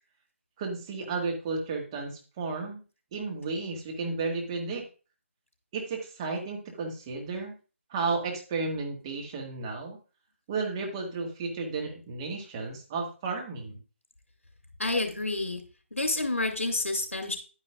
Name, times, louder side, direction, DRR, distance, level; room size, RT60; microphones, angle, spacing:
voice 1, 0.6-2.8 3.1-4.8 5.7-7.6 7.9-10.0 10.5-13.8, right 4 dB, 20° right, 1 dB, 1.6 m, -33 dB
voice 2, 14.8-15.6 15.9-17.4, left 2 dB, 70° left, 5 dB, 2.6 m, -29 dB
10.5 x 9.7 x 2.4 m, 0.34 s
figure-of-eight pair, 150°, 8 cm